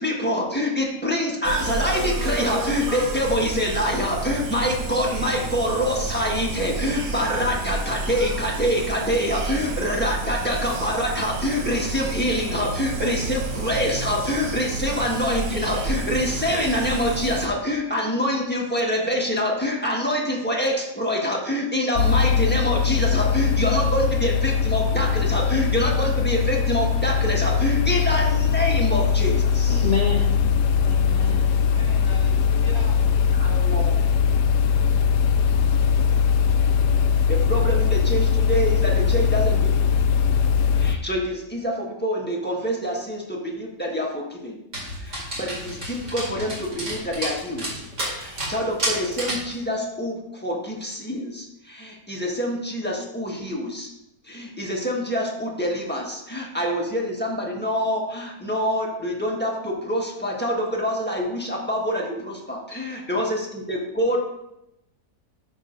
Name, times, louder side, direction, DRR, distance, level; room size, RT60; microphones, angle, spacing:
voice 1, 0.0-29.9 33.4-34.0 37.3-39.9 40.7-44.6 45.0-47.7 48.1-53.9 54.2-64.3, equal, 5° left, -2 dB, 1.2 m, -26 dB
sound 1, 1.4-17.5, right 2 dB, 75° right, 1.5 m, -30 dB
sound 2, 22.0-41.0, left 6 dB, 75° left, 1.1 m, -20 dB
voice 2, 29.7-30.5 30.8-31.7 62.7-62.9, left 5 dB, 50° left, -2 dB, 0.4 m, -29 dB
voice 3, 31.5-33.0 34.7-35.4, equal, 20° right, -4 dB, 1.1 m, -42 dB
Dog, 44.7-49.5, right 1 dB, 45° right, 2.8 m, -31 dB
10.5 x 6.4 x 2.6 m, 0.84 s
omnidirectional pair, 1.8 m